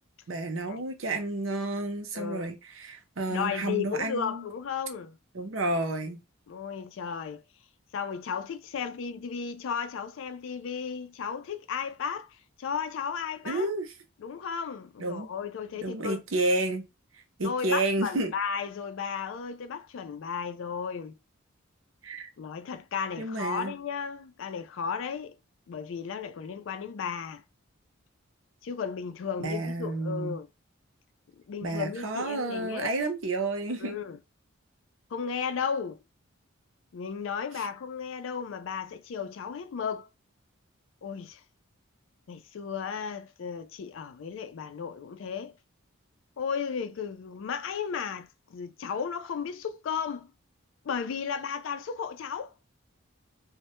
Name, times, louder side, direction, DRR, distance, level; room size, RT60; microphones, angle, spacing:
voice 1, 0.3-4.4 5.3-6.2 13.5-13.9 15.0-15.3 15.8-16.8 17.4-18.3 22.0-22.3 23.2-23.7 29.4-30.4 31.6-34.0 37.6-37.7, right 2 dB, 65° right, 0.6 m, -30 dB
voice 2, 2.1-2.5 3.3-5.2 6.5-7.4 7.9-13.7 14.2-16.2 17.4-21.1 22.4-25.4 25.7-27.4 28.6-30.5 31.5-32.9 33.8-34.2 35.1-36.0 36.9-40.1 41.0-41.4 42.3-45.5 46.4-50.3 50.8-52.5, left 6 dB, 65° left, 0.3 m, -34 dB
2.1 x 2.1 x 2.9 m
head